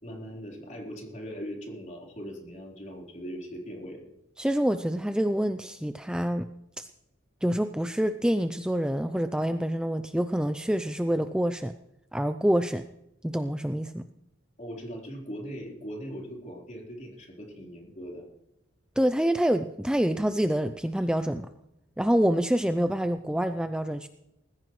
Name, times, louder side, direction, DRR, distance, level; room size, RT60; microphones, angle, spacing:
voice 1, 0.0-4.0 14.6-18.2, equal, 40° left, -1 dB, 3.9 m, -40 dB
voice 2, 4.4-6.5 6.8-6.9 7.4-11.7 12.1-12.8 13.2-14.0 19.0-21.5 22.0-24.1, equal, 5° right, 9 dB, 0.4 m, -26 dB
20.0 x 15.5 x 3.2 m, 0.86 s
head